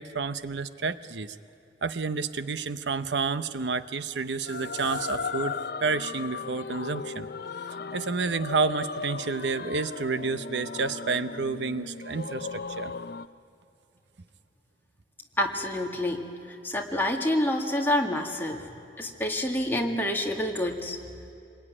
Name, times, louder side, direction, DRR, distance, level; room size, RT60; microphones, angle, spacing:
voice 1, 0.0-1.4 1.8-7.3 7.9-12.9, right 4 dB, 85° right, 12 dB, 0.8 m, -30 dB
sound 1, 4.5-13.3, left 5 dB, 60° left, 0.7 m, -36 dB
voice 2, 15.4-16.2 16.6-18.7 19.0-21.0, left 1 dB, 10° left, 0 dB, 2.1 m, -27 dB
27.0 x 21.5 x 9.9 m, 2.7 s
head